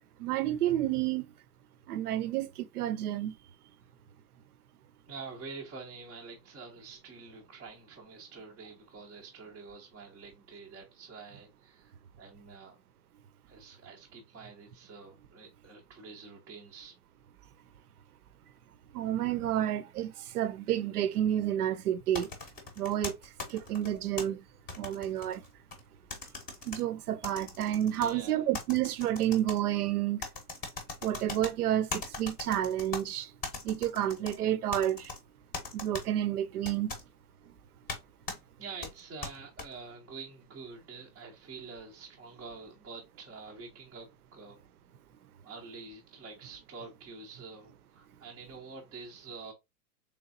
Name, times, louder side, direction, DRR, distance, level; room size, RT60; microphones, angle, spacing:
voice 1, 0.2-1.3 1.9-3.3 18.9-22.3 22.8-23.2 23.5-24.4 24.8-25.4 26.7-30.2 31.0-33.3 33.6-35.1 35.7-36.9, right 11 dB, 70° right, 0.5 m, -30 dB
voice 2, 5.1-12.8 13.5-16.9 27.9-28.4 38.6-44.6 45.4-49.5, right 4 dB, 5° right, 0.3 m, -47 dB
sound 1, 22.1-24.2 24.7-25.8 26.1-26.8 27.2-28.1 28.5-29.6 30.2-31.5 31.9-33.0 33.4-34.4 34.7-35.2 35.5-36.0 36.6-37.0 37.9-38.0 38.3-38.4 38.8-39.7, left 3 dB, 20° left, 0.7 m, -39 dB
3.4 x 3.0 x 2.5 m
hypercardioid pair, 120°, 48 cm